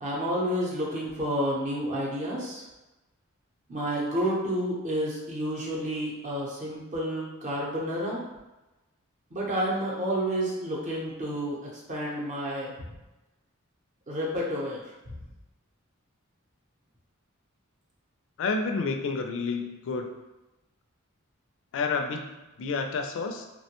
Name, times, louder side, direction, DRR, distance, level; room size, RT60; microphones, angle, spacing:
voice 1, 0.0-2.6 3.7-8.2 9.3-12.9 14.1-14.8, equal, 35° right, -4 dB, 0.7 m, -30 dB
voice 2, 18.4-20.1 21.7-23.5, left 4 dB, 60° left, 4 dB, 0.3 m, -30 dB
2.9 x 2.1 x 2.9 m, 1.0 s
head